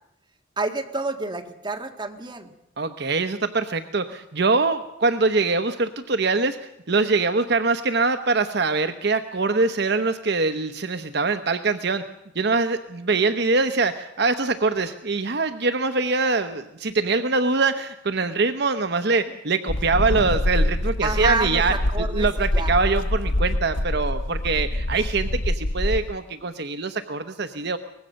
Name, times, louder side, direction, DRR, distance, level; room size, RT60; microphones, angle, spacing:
voice 1, 0.6-2.5 21.0-22.3 22.5-22.7, right 3 dB, 25° right, 3 dB, 1.9 m, -28 dB
voice 2, 2.8-6.6 6.9-12.0 12.3-27.8, right 3 dB, 60° right, 8 dB, 0.9 m, -23 dB
sound 1, 19.7-26.1, left 1 dB, 75° left, 0.9 m, -25 dB
24.0 x 20.0 x 6.5 m, 0.85 s
head